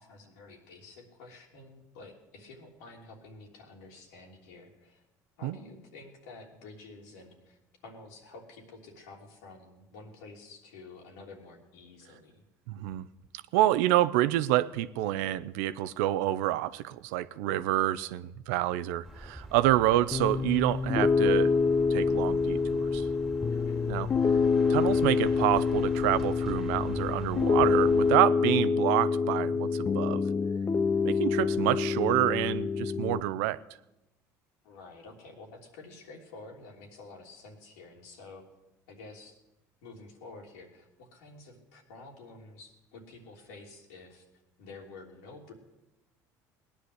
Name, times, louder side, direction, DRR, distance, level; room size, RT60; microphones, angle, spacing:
voice 1, 0.0-5.0 5.4-12.4 23.5-23.8 34.6-38.4 38.9-39.4 39.8-44.3 44.6-45.5, left 3 dB, 90° left, 3.3 m, -50 dB
voice 2, 12.7-13.0 13.5-21.5 21.9-23.1 23.9-24.1 24.7-30.2 31.0-33.6, right 15 dB, 85° right, 0.6 m, -28 dB
sound 1, 19.0-28.2, right 1 dB, ahead, 2.6 m, -44 dB
Piano, 20.1-33.2, left 5 dB, 30° left, 0.6 m, -26 dB
18.0 x 10.0 x 8.0 m
supercardioid pair, 90°, 8 cm